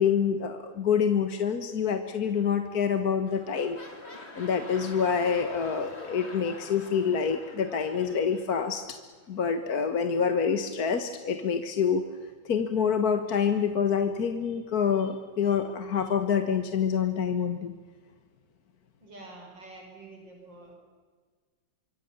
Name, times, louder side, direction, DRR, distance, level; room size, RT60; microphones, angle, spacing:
voice 1, 0.0-3.8 4.3-9.0 9.3-12.0 12.5-17.7, left 7 dB, 50° left, 7 dB, 1.8 m, -27 dB
sound 1, 2.7-2.9 3.2-9.0 9.7-9.8, left 2 dB, 30° left, 3.0 m, -46 dB
voice 2, 19.0-20.8, right 2 dB, 65° right, 1 dB, 6.4 m, -47 dB
25.5 x 24.0 x 7.1 m, 1.5 s
omnidirectional pair, 2.2 m